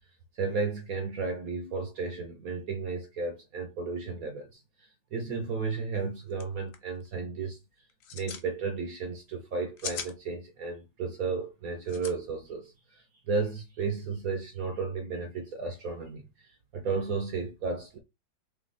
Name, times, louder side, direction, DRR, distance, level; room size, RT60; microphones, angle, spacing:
voice 1, 0.3-7.6 8.1-18.0, right 4 dB, 60° right, 1.0 m, -34 dB
sound 1, 6.0-6.1 6.3-6.4 6.7-7.1 7.9-8.5 9.5-10.1 11.8-12.1, left 7 dB, 65° left, 0.8 m, -38 dB
3.3 x 3.2 x 4.0 m
omnidirectional pair, 2.3 m